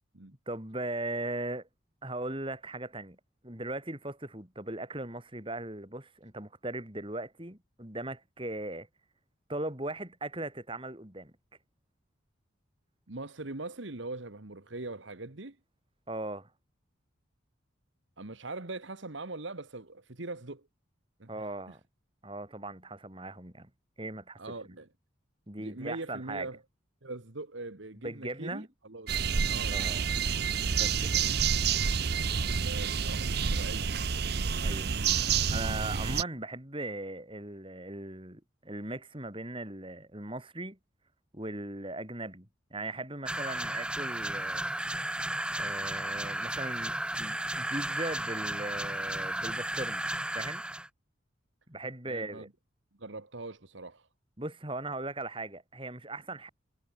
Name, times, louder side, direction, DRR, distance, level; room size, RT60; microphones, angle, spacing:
voice 1, 0.5-1.7 2.0-3.2 3.4-8.9 9.5-11.3 16.1-16.5 21.3-21.8 22.2-23.7 24.0-24.4 25.5-26.5 28.0-28.7 29.7-30.1 30.7-31.2 34.6-35.0 35.5-40.8 41.3-44.7 45.6-50.1 50.3-50.6 51.7-52.5 54.4-56.5, right 2 dB, 25° right, 3.7 m, -38 dB
voice 2, 13.1-15.6 18.2-20.7 21.2-21.5 24.4-24.9 25.6-26.6 27.0-29.1 29.5-29.8 32.4-33.9 52.1-52.5 53.0-54.1, right 2 dB, 65° right, 1.7 m, -41 dB
sound 1, 29.1-36.2, right 6 dB, 50° right, 0.7 m, -29 dB
sound 2, 43.3-50.9, right 1 dB, 5° right, 1.5 m, -34 dB
head